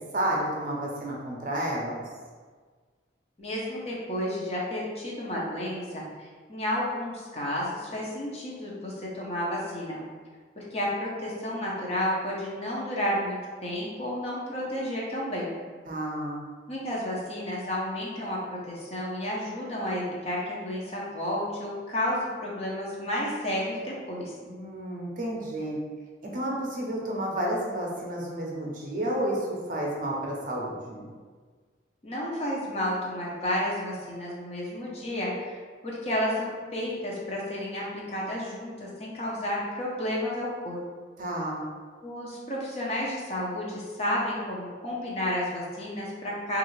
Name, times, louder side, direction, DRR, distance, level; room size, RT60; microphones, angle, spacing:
voice 1, 0.1-2.0 15.9-16.4 24.5-25.8 26.2-31.1 41.2-41.6, right 1 dB, 45° right, -3 dB, 0.6 m, -31 dB
voice 2, 3.4-10.0 10.6-15.5 16.7-24.3 32.0-35.6 35.8-40.8 42.0-46.6, left 1 dB, 35° left, -4 dB, 0.6 m, -31 dB
3.2 x 2.4 x 3.1 m, 1.5 s
head